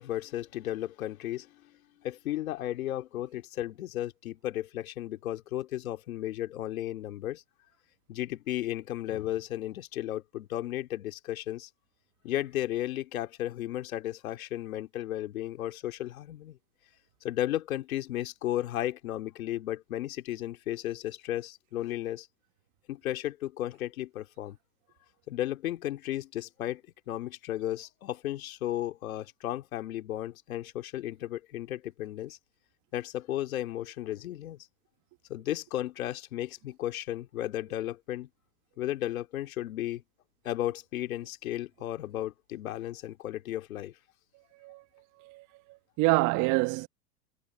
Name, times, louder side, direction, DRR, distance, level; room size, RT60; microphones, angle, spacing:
voice 1, 0.0-1.6 2.0-7.4 8.1-11.7 12.2-16.6 17.2-22.3 22.9-24.6 25.3-26.8 27.1-32.4 32.9-34.6 35.3-38.3 38.8-40.0 40.4-43.9, left 13 dB, 75° left, 2.5 m, -34 dB
voice 2, 46.0-46.9, right 23 dB, 45° right, 1.3 m, -26 dB
hypercardioid pair, 105°, 42 cm